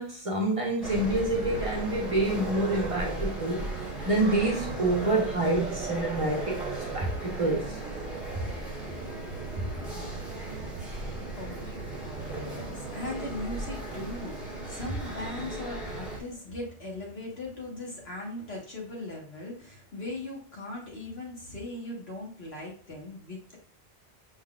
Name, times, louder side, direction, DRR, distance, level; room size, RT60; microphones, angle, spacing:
voice 1, 0.0-3.6 4.1-6.6 6.9-7.8 9.5-9.8, right 2 dB, 35° right, -2 dB, 1.0 m, -27 dB
sound 1, 0.8-16.2, right 2 dB, ahead, 1.7 m, -36 dB
voice 2, 11.0-23.6, left 2 dB, 65° left, -2 dB, 1.8 m, -39 dB
5.4 x 3.8 x 2.4 m, 0.43 s
omnidirectional pair, 1.1 m